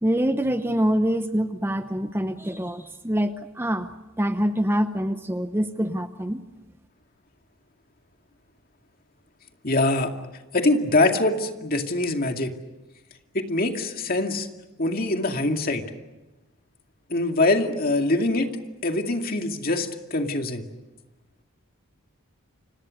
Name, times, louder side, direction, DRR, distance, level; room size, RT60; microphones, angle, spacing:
voice 1, 0.0-3.9 4.2-6.4, equal, 10° right, 9 dB, 0.8 m, -25 dB
voice 2, 9.6-10.1 10.5-12.5 13.3-14.5 14.8-15.8 17.1-18.6 18.8-20.7, left 2 dB, 45° left, 4 dB, 2.3 m, -23 dB
29.5 x 26.5 x 6.5 m, 1.1 s
head